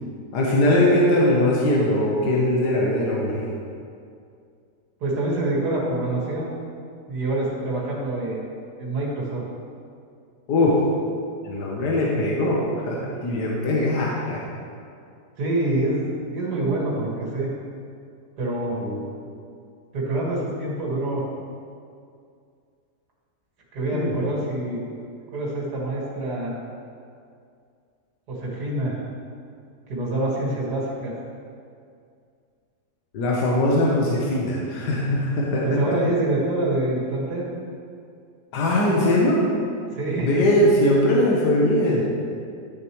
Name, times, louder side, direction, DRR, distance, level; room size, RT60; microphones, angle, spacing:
voice 1, 0.3-3.4 10.5-10.8 11.4-14.4 18.8-19.0 23.9-24.1 33.1-35.9 38.5-39.4 40.2-42.0, left 1 dB, 70° left, -4 dB, 1.6 m, -21 dB
voice 2, 5.0-6.5 7.1-8.4 8.8-9.4 15.4-17.5 18.4-18.8 19.9-21.2 23.7-24.8 25.3-26.5 28.3-28.9 29.9-31.1 35.6-37.5 39.9-40.4, right 2 dB, 65° right, -5 dB, 2.5 m, -26 dB
12.0 x 6.7 x 3.1 m, 2.3 s
omnidirectional pair, 1.9 m